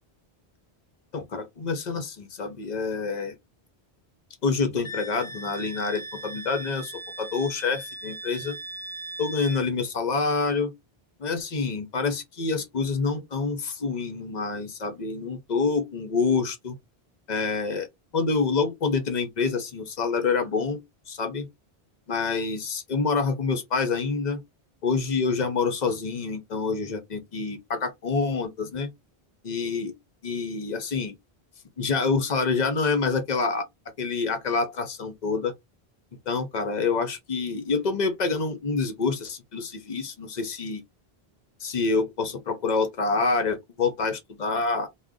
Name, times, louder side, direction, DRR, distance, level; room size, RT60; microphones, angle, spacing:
voice 1, 1.1-3.4 4.4-8.6 9.2-10.7 11.2-16.8 17.3-17.9 18.1-20.8 21.1-21.5 22.1-24.4 24.8-28.9 29.4-29.9 30.2-31.1 31.8-33.6 34.0-35.5 36.3-40.8 41.6-44.9, left 4 dB, 50° left, 0.7 m, -27 dB
Wind instrument woodwind instrument, 4.8-9.6, right 2 dB, 30° left, 1.0 m, -39 dB
2.4 x 2.1 x 3.5 m
omnidirectional pair, 1.1 m